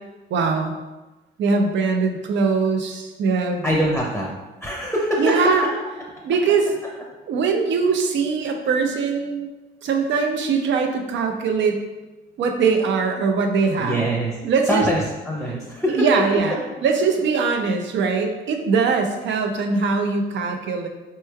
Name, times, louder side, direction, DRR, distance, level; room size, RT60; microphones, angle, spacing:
voice 1, 0.3-0.8 1.4-3.6 5.2-5.6 6.2-6.7 7.3-9.5 9.8-11.8 12.4-14.0 14.4-14.8 15.9-16.6 16.8-20.9, right 5 dB, 65° right, 4 dB, 0.5 m, -21 dB
voice 2, 3.6-4.3 4.6-5.3 13.8-14.4 14.7-16.1, equal, ahead, -3 dB, 0.7 m, -23 dB
4.4 x 3.0 x 2.3 m, 1.1 s
cardioid pair, 90°, 20 cm